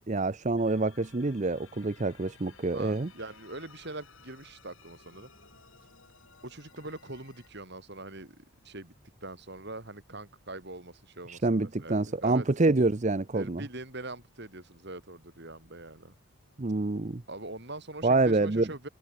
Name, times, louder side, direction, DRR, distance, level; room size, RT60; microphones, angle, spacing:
voice 1, 0.1-3.1 11.3-13.6 16.6-17.2 18.0-18.7, right 3 dB, 35° right, 0.6 m, -26 dB
sound 1, 0.6-7.5, left 5 dB, 65° left, 7.1 m, -57 dB
voice 2, 2.7-5.3 6.4-8.9 9.2-12.5 13.3-16.2 17.3-18.9, right 2 dB, 50° right, 3.8 m, -43 dB
head